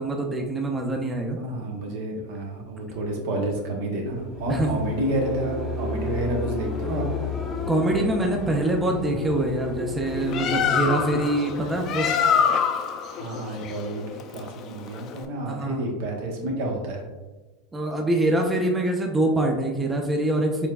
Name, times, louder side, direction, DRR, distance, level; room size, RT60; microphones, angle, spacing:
voice 1, 0.0-1.4 4.5-4.8 7.7-12.1 15.5-15.9 17.7-20.7, right 1 dB, 15° right, 2 dB, 0.5 m, -24 dB
voice 2, 1.3-7.1 13.1-17.0, right 1 dB, 70° right, 1 dB, 0.9 m, -30 dB
sound 1, 4.1-13.1, left 3 dB, 20° left, 0.7 m, -32 dB
Bird, 10.1-15.3, left 7 dB, 45° left, 0.4 m, -25 dB
4.4 x 3.3 x 2.3 m, 1.2 s
hypercardioid pair, 105°, 0 cm